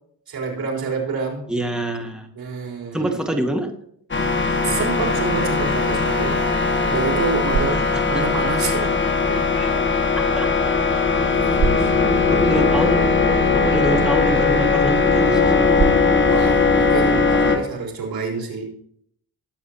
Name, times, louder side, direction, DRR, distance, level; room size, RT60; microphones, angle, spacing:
voice 1, 0.3-1.5 2.3-3.4 4.6-6.5 6.9-10.2 11.0-11.9 16.3-18.8, right 4 dB, 80° right, -1 dB, 4.0 m, -28 dB
voice 2, 1.5-2.3 2.9-3.7 7.9-8.2 9.6-9.7 10.1-10.7 12.3-13.1 13.5-15.6, right 1 dB, ahead, 3 dB, 1.8 m, -25 dB
sound 1, 4.1-17.6, left 4 dB, 30° left, 1.7 m, -19 dB
sound 2, 7.1-18.2, right 3 dB, 45° right, 1.2 m, -32 dB
19.5 x 7.2 x 2.8 m, 0.66 s
cardioid pair, 115°, 36 cm